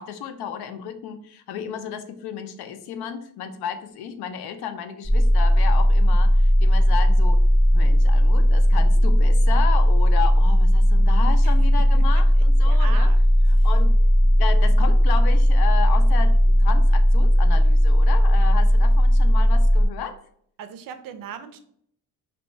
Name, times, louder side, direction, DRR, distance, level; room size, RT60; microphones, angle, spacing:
voice 1, 0.0-7.4 7.7-13.1 13.5-13.9 14.2-20.2, left 8 dB, 90° left, 9 dB, 0.6 m, -33 dB
sound 1, 5.0-19.8, equal, 15° left, 0.6 m, -16 dB
voice 2, 12.6-13.2 13.6-13.7 20.6-21.6, right 8 dB, 60° right, 9 dB, 0.5 m, -38 dB
3.0 x 2.7 x 4.4 m, 0.65 s
cardioid pair, 135°, 38 cm